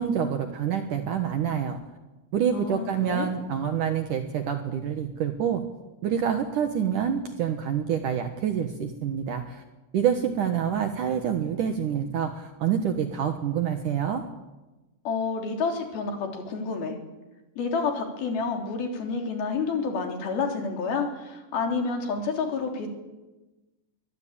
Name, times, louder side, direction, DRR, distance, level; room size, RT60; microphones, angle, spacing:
voice 1, 0.0-1.8 2.3-5.6 6.0-9.6 9.9-14.2, right 8 dB, 65° right, 6 dB, 2.2 m, -27 dB
voice 2, 2.5-3.3 15.0-16.9 17.6-22.9, left 4 dB, 55° left, 3 dB, 5.0 m, -29 dB
22.5 x 19.5 x 8.7 m, 1.1 s
omnidirectional pair, 5.3 m